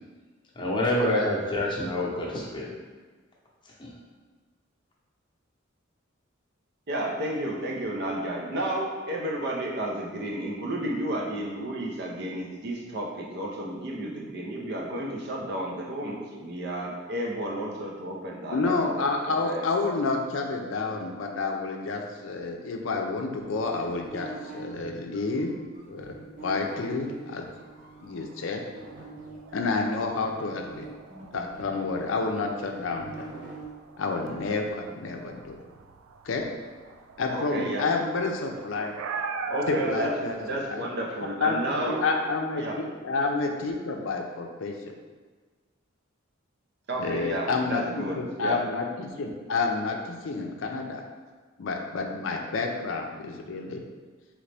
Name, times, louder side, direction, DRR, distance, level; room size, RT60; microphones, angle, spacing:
voice 1, 0.5-2.7 3.6-3.9, left 1 dB, 25° left, -4 dB, 0.8 m, -27 dB
voice 2, 6.9-19.0 19.3-19.7 37.3-37.9 39.5-42.0 42.6-42.8 46.9-48.6, right 1 dB, 55° right, -1 dB, 0.7 m, -32 dB
voice 3, 18.5-25.5 25.9-27.5 28.0-28.6 29.5-30.9 31.3-33.4 34.0-35.6 36.2-36.5 37.2-39.0 39.7-40.4 40.7-40.9 41.4-41.6 42.0-44.9 47.0-51.0 51.6-53.8, left 3 dB, 70° left, 2 dB, 0.5 m, -29 dB
sound 1, 23.3-28.0 28.7-33.6, right 3 dB, 40° right, 1.0 m, -44 dB
sound 2, 28.1-40.6, right 4 dB, 85° right, 0.3 m, -40 dB
3.8 x 3.1 x 3.3 m, 1.4 s
head